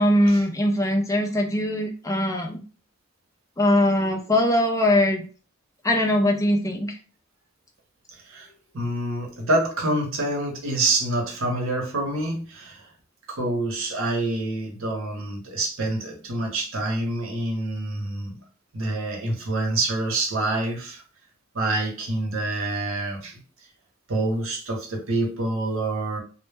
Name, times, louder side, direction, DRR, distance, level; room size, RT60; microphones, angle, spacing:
voice 1, 0.0-2.6 3.6-5.2 5.8-7.0, left 1 dB, 15° left, 0.4 m, -21 dB
voice 2, 8.1-12.9 13.3-18.4 18.7-21.0 21.5-23.4 24.1-26.2, right 2 dB, 80° right, 0.8 m, -27 dB
2.1 x 2.0 x 3.3 m
head